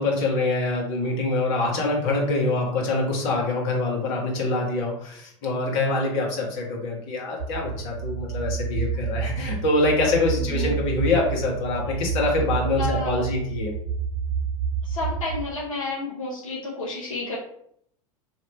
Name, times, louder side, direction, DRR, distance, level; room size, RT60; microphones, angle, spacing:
voice 1, 0.0-13.7, left 2 dB, 55° left, -2 dB, 1.4 m, -25 dB
sound 1, 7.4-15.4, right 6 dB, 90° right, 0.4 m, -29 dB
voice 2, 10.3-10.9 12.8-13.3 14.8-17.4, left 3 dB, 85° left, -4 dB, 1.0 m, -31 dB
3.0 x 2.8 x 4.2 m, 0.68 s
hypercardioid pair, 90°, 17 cm